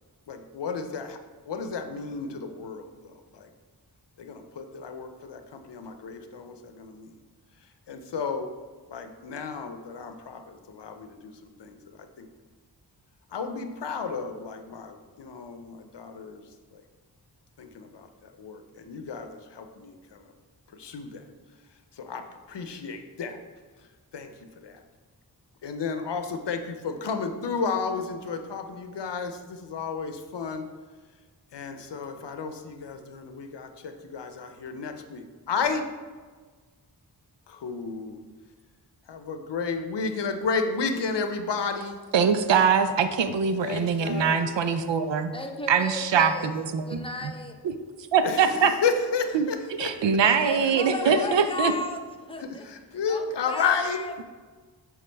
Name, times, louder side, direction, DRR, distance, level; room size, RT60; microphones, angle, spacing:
voice 1, 0.3-1.2 1.5-3.5 4.2-7.1 7.9-8.5 8.9-11.8 12.2-12.3 13.3-16.4 17.6-18.1 18.4-20.2 20.7-21.2 22.0-22.2 22.5-23.4 24.1-24.3 24.6-24.8 25.6-30.7 31.5-35.9 37.5-38.2 39.1-42.0 43.6-44.4 48.2-49.9 50.6-50.7 51.0-51.3 52.4-54.0, left 5 dB, 70° left, 7 dB, 0.7 m, -32 dB
voice 2, 42.1-45.3 45.7-47.3 48.1-48.7 49.3-49.5 49.8-51.7, right 6 dB, 75° right, 9 dB, 0.6 m, -23 dB
voice 3, 43.8-44.2 45.3-46.5 46.8-47.6 50.4-52.7 53.1-54.2, left 2 dB, 10° left, 4 dB, 0.7 m, -35 dB
8.3 x 3.5 x 3.4 m, 1.4 s
cardioid pair, 45°, 44 cm